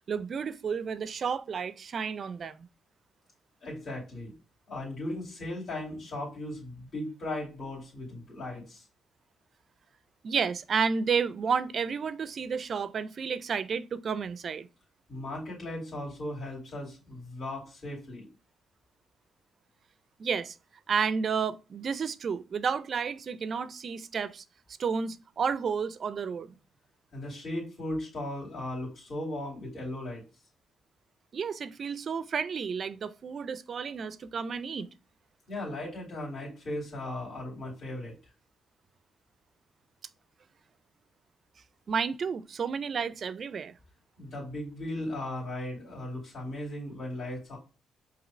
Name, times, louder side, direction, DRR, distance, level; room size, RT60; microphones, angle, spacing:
voice 1, 0.1-2.7 10.2-14.7 20.2-20.6 20.9-24.4 24.8-26.5 31.3-34.9 41.9-43.7, right 6 dB, 50° right, 0.4 m, -31 dB
voice 2, 3.6-4.3 4.7-8.8 15.1-18.3 27.1-30.2 35.5-38.1 44.2-47.6, left 1 dB, 50° left, 2.5 m, -37 dB
5.0 x 2.7 x 3.1 m
cardioid pair, 90°, 0 cm